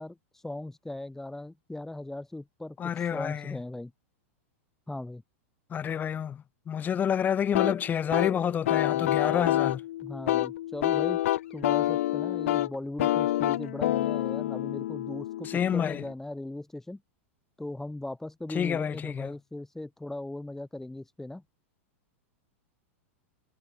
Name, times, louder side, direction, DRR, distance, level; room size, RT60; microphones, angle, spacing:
voice 1, 0.0-3.9 4.9-5.2 10.0-11.2 11.5-17.0 17.6-21.4, left 2 dB, 5° left, 1.1 m, -38 dB
voice 2, 2.8-3.6 5.7-9.8 15.4-16.0 18.5-19.3, left 8 dB, 25° left, 2.6 m, -29 dB
sound 1, 7.5-16.1, left 14 dB, 75° left, 1.7 m, -28 dB
hypercardioid pair, 125°, 7 cm